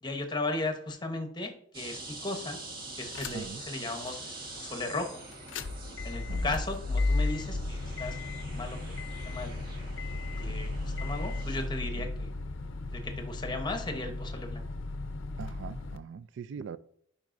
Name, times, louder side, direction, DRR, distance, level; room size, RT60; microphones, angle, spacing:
voice 1, 0.0-2.6 3.0-5.2 6.0-8.2 8.5-9.6 10.3-12.3 12.9-14.7, left 2 dB, 20° left, 0.9 m, -36 dB
sound 1, 1.7-11.7, right 2 dB, 45° right, 1.4 m, -45 dB
sound 2, 3.1-3.6 4.1-4.2 5.3-16.0, left 2 dB, 65° left, 0.5 m, -34 dB
voice 2, 15.4-16.8, right 6 dB, 60° right, 0.3 m, -42 dB
10.5 x 4.2 x 2.6 m
head